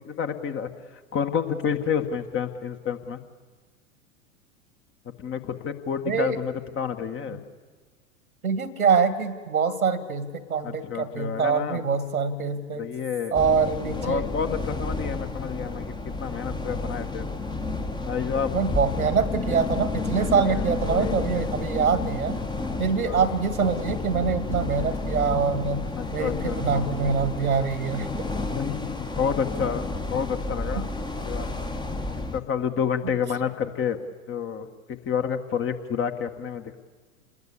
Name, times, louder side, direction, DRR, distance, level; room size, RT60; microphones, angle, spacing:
voice 1, 0.1-3.2 5.2-7.4 10.6-11.8 12.8-13.4 14.0-17.3 18.0-18.7 20.5-21.5 23.0-23.4 25.9-26.9 28.6-30.9 31.2-31.5 32.3-34.0 34.3-36.8, left 7 dB, 30° left, 7 dB, 1.7 m, -29 dB
voice 2, 6.1-6.4 7.3-7.4 8.4-12.8 13.3-14.2 18.5-22.4 22.8-25.9 26.1-28.2 30.8-30.9, right 5 dB, 85° right, 14 dB, 2.0 m, -25 dB
sound 1, 13.3-32.4, left 3 dB, 10° left, 1.3 m, -31 dB
27.5 x 21.0 x 8.6 m, 1.4 s
figure-of-eight pair, 90°, 42 cm